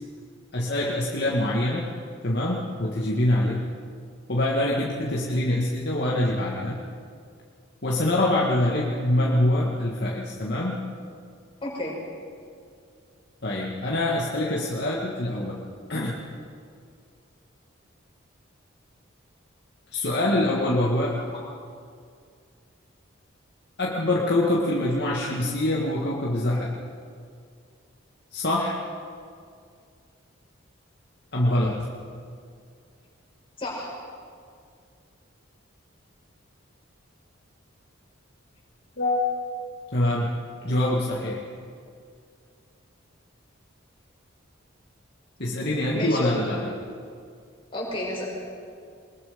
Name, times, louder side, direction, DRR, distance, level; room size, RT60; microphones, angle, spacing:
voice 1, 0.5-1.9 2.2-3.6 4.3-6.8 7.8-10.8 13.4-15.6 15.9-16.1 19.9-21.2 23.8-26.8 28.3-28.8 31.3-31.9 39.0-39.3 39.9-40.3 40.6-41.4 45.4-46.6, left 1 dB, 55° left, -4 dB, 2.0 m, -24 dB
voice 2, 11.6-11.9 21.3-21.4 33.6-34.0 45.9-46.3 47.7-48.2, left 1 dB, 25° left, -3 dB, 5.7 m, -31 dB
23.0 x 21.5 x 5.3 m, 2.2 s
head